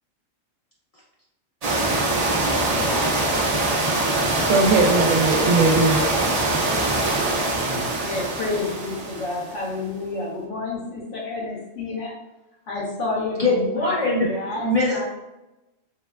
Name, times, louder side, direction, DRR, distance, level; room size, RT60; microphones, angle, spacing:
sound 1, 1.6-9.6, right 2 dB, 50° right, 0.4 m, -23 dB
voice 1, 4.5-7.0, right 3 dB, 90° right, 3 dB, 1.0 m, -21 dB
voice 2, 7.5-7.9 13.4-15.1, left 2 dB, 45° left, -5 dB, 0.5 m, -23 dB
voice 3, 8.0-12.1 12.7-15.1, left 3 dB, 70° left, -3 dB, 1.2 m, -30 dB
3.6 x 2.1 x 2.3 m, 0.98 s
omnidirectional pair, 1.3 m